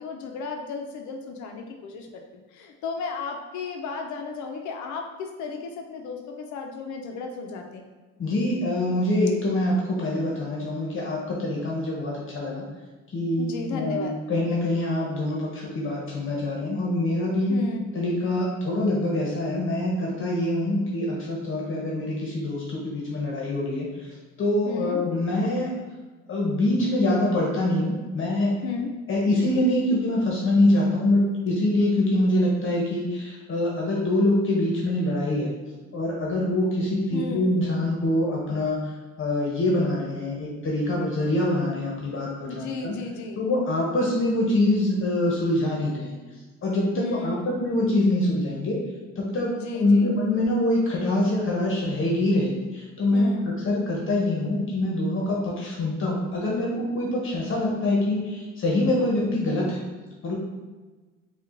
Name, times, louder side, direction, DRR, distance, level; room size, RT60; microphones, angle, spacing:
voice 1, 0.0-7.8 13.4-14.2 17.5-17.9 24.7-25.0 28.6-28.9 37.1-37.5 42.5-43.4 47.0-47.5 49.5-50.2 53.1-53.5, left 4 dB, 85° left, 4 dB, 0.7 m, -34 dB
voice 2, 8.2-12.6 13.1-17.6 17.9-23.9 24.4-25.7 26.3-28.5 29.1-35.5 35.9-38.8 39.2-43.0 43.4-46.2 46.6-48.8 49.2-59.8 60.2-60.3, left 1 dB, 45° left, -3 dB, 1.1 m, -24 dB
4.5 x 2.5 x 3.7 m, 1.3 s
cardioid pair, 105°, 29 cm